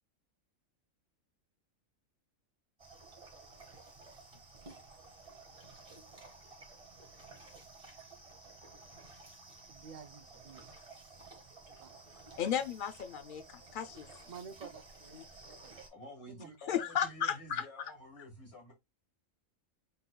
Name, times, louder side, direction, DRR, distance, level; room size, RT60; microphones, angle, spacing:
sound 1, 2.8-15.9, right 3 dB, 25° right, 1.1 m, -54 dB
voice 1, 9.7-10.8 11.8-11.9 14.3-15.8 16.3-16.6, right 6 dB, 90° right, 0.4 m, -51 dB
voice 2, 12.4-14.1 15.1-15.2 16.7-17.9, left 8 dB, 85° left, 0.4 m, -35 dB
voice 3, 15.9-18.7, left 1 dB, 55° left, 2.2 m, -50 dB
5.5 x 3.8 x 2.2 m
omnidirectional pair, 1.4 m